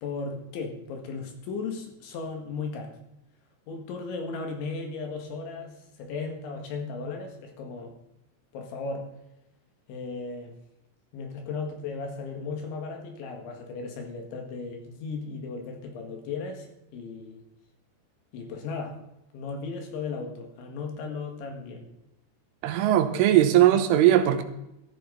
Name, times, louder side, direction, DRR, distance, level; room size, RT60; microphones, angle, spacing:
voice 1, 0.0-3.0 3.7-8.0 8.5-9.1 9.9-10.5 11.1-17.4 18.3-19.0 19.3-21.9, left 4 dB, 70° left, 3 dB, 4.1 m, -36 dB
voice 2, 22.6-24.4, right 12 dB, 90° right, 7 dB, 3.4 m, -19 dB
15.5 x 12.5 x 4.1 m, 0.87 s
omnidirectional pair, 5.6 m